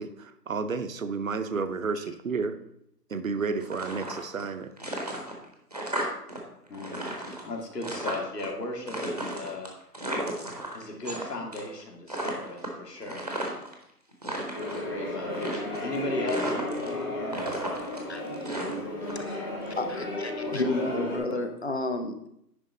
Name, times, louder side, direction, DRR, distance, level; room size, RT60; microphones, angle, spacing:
voice 1, 0.0-2.6 3.1-4.7, right 4 dB, 55° right, 10 dB, 0.7 m, -31 dB
sound 1, 3.6-4.5 4.8-6.4 6.7-8.5 8.9-11.2 11.5-11.8 12.1-13.7 14.1-14.8 15.3-16.0 16.3-17.0 17.3-19.1, right 1 dB, 25° right, 0.8 m, -34 dB
voice 2, 6.7-9.7 10.7-13.2 14.7-17.8 18.5-19.0 20.5-21.5, left 2 dB, 70° left, 1 dB, 2.1 m, -37 dB
sound 2, 14.5-21.2, left 1 dB, 15° left, 0.9 m, -33 dB
voice 3, 19.1-22.3, left 2 dB, 40° left, 7 dB, 0.6 m, -32 dB
9.8 x 3.6 x 5.2 m, 0.77 s
hypercardioid pair, 170°, 49 cm